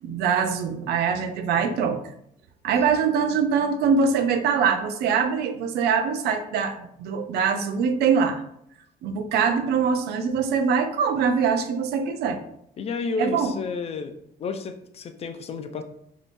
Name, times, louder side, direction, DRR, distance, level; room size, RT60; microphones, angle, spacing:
voice 1, 0.0-2.0 2.6-8.4 9.0-12.4 13.2-13.5, right 6 dB, 75° right, 8 dB, 0.4 m, -23 dB
voice 2, 1.5-1.9 12.8-14.1 14.4-15.8, left 4 dB, 40° left, 7 dB, 0.4 m, -31 dB
3.4 x 2.7 x 2.5 m, 0.74 s
cardioid pair, 110°, 17 cm